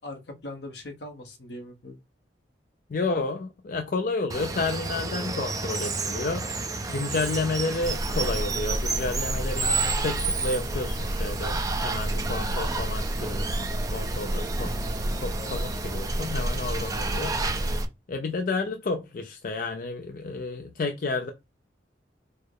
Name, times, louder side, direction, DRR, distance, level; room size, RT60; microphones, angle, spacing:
voice 1, 0.0-2.0 15.4-15.6, left 1 dB, 70° left, 0.9 m, -40 dB
voice 2, 2.9-6.5 6.9-14.7 15.2-17.4 18.1-21.3, left 3 dB, 50° left, 0.5 m, -31 dB
Water, 4.3-17.8, right 3 dB, 20° right, 0.5 m, -31 dB
sound 1, 7.8-17.8, right 1 dB, 75° right, 1.4 m, -31 dB
4.5 x 2.1 x 4.6 m
head